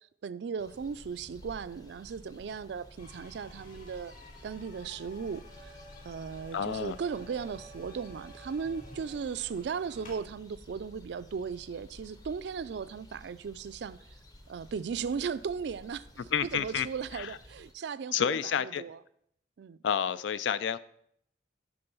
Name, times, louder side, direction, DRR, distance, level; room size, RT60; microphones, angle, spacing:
voice 1, 0.2-4.1 4.4-5.7 6.1-14.0 14.5-16.2 16.5-19.0 19.6-19.8, right 6 dB, 65° right, 0.3 m, -37 dB
sound 1, 0.6-17.7, equal, 20° left, 0.6 m, -53 dB
sound 2, 3.0-10.2, left 1 dB, 45° left, 2.6 m, -51 dB
voice 2, 6.5-6.9 16.3-16.9 17.1-17.3 18.1-18.8 19.8-20.8, left 8 dB, 75° left, 0.4 m, -29 dB
11.0 x 3.8 x 5.5 m
head